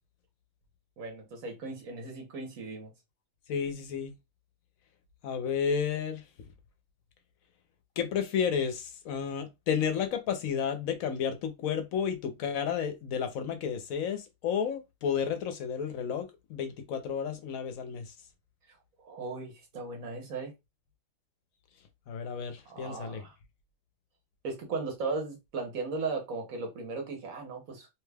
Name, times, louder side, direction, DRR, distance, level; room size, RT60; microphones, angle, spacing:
voice 1, 1.0-2.9 19.0-20.5 22.7-23.4 24.4-27.9, right 3 dB, 85° right, 1.3 m, -37 dB
voice 2, 3.5-4.1 5.2-6.2 8.0-18.1 22.1-23.2, left 7 dB, 90° left, 1.1 m, -32 dB
3.1 x 2.3 x 3.3 m
omnidirectional pair, 1.4 m